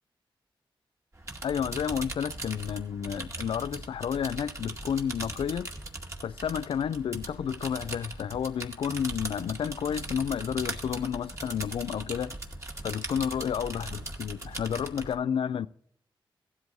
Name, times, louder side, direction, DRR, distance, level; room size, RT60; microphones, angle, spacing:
Mechanical Keyboard Typing (Bass Version), 1.2-15.1, right 2 dB, 35° right, 2.1 m, -39 dB
voice 1, 1.4-5.7 6.2-12.3 12.8-15.7, left 8 dB, 80° left, 0.4 m, -31 dB
16.5 x 12.5 x 2.7 m
cardioid pair, 75°, 9 cm